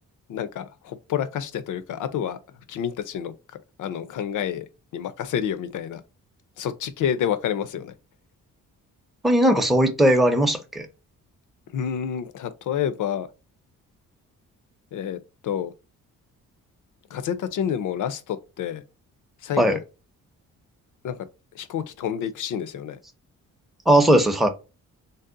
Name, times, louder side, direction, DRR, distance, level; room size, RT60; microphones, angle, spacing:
voice 1, 0.3-2.4 2.7-3.3 3.8-4.7 4.9-6.0 6.6-7.9 11.7-13.3 14.9-15.2 15.4-15.7 17.1-18.8 19.4-19.8 21.0-21.2 21.6-23.0, left 9 dB, 65° left, 0.5 m, -28 dB
voice 2, 9.2-10.9 19.6-19.8 23.9-24.5, right 1 dB, ahead, 0.5 m, -18 dB
2.7 x 2.0 x 3.7 m
cardioid pair, 75°, 34 cm